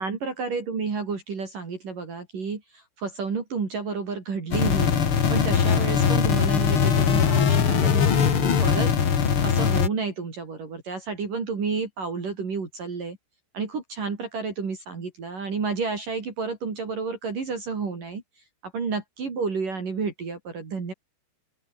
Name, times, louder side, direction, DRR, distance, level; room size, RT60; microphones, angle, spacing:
voice 1, 0.0-4.9 5.3-8.9 9.4-13.2 13.5-18.2 18.6-20.9, right 4 dB, 40° right, 5.4 m, -31 dB
sound 1, 4.5-9.9, left 7 dB, 75° left, 1.2 m, -21 dB
open air
omnidirectional pair, 6.0 m